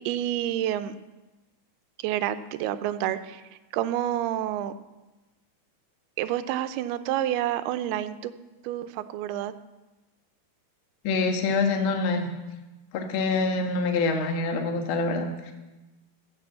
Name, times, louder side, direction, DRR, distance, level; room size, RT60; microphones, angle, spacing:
voice 1, 0.1-0.9 2.0-3.4 3.7-4.7 6.2-8.3 8.6-9.5, right 12 dB, 90° right, 12 dB, 2.7 m, -28 dB
voice 2, 11.0-12.3 12.9-15.5, left 3 dB, 60° left, 3 dB, 1.3 m, -26 dB
13.5 x 7.9 x 7.6 m, 1.1 s
omnidirectional pair, 4.4 m